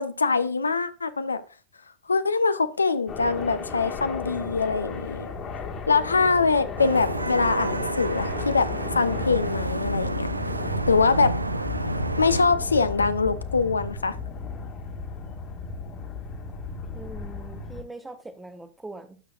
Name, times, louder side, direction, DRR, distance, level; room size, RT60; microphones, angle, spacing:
voice 1, 0.0-1.4 2.1-5.3 5.9-8.7 8.9-10.3 10.9-11.3 12.2-14.2, left 4 dB, 75° left, 0.5 m, -23 dB
sound 1, 3.1-17.8, left 4 dB, 30° left, 1.5 m, -34 dB
Vehicle horn car horn honking / Traffic noise roadway noise, 6.8-12.4, right 2 dB, 85° right, 0.4 m, -30 dB
voice 2, 16.9-19.2, right 2 dB, 10° right, 0.9 m, -41 dB
12.0 x 6.2 x 2.4 m
figure-of-eight pair, 90°, 0 cm